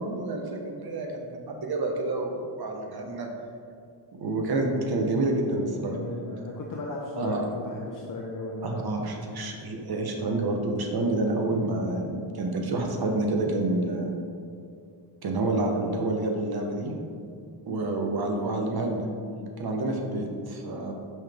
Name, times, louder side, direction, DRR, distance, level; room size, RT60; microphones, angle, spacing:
voice 1, 0.0-3.3 4.1-6.0 7.1-7.4 8.6-14.1 15.2-16.9 17.7-19.1 19.6-20.9, right 2 dB, 50° right, 2 dB, 1.0 m, -28 dB
voice 2, 5.7-9.0, left 2 dB, 40° left, -2 dB, 0.7 m, -36 dB
5.6 x 5.5 x 3.5 m, 2.3 s
cardioid pair, 110°, 48 cm